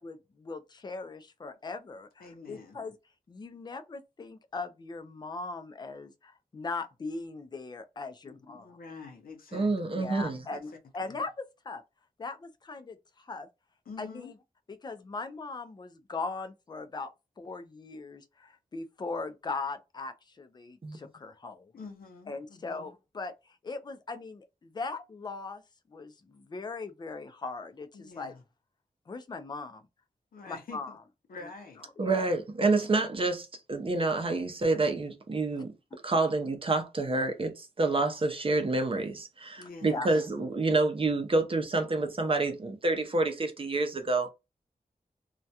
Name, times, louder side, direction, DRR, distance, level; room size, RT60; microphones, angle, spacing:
voice 1, 0.0-2.9 3.3-8.7 9.9-11.8 12.2-13.5 14.0-14.3 14.8-17.1 17.4-21.7 22.3-23.3 23.6-25.6 25.9-28.3 29.1-29.8 30.5-30.9 32.0-32.2 39.9-40.1, left 3 dB, 30° left, 0.3 m, -39 dB
voice 2, 2.2-2.8 8.3-9.7 10.5-10.6 11.0-11.2 13.9-14.3 21.7-22.9 27.9-28.4 30.3-31.0 31.3-31.8 39.6-40.3, left 4 dB, 80° left, 0.7 m, -46 dB
voice 3, 9.5-10.4 20.8-21.0 32.0-35.7 36.0-44.3, right 3 dB, 40° right, 0.5 m, -28 dB
2.3 x 2.1 x 2.7 m
wide cardioid pair, 125°, 15 cm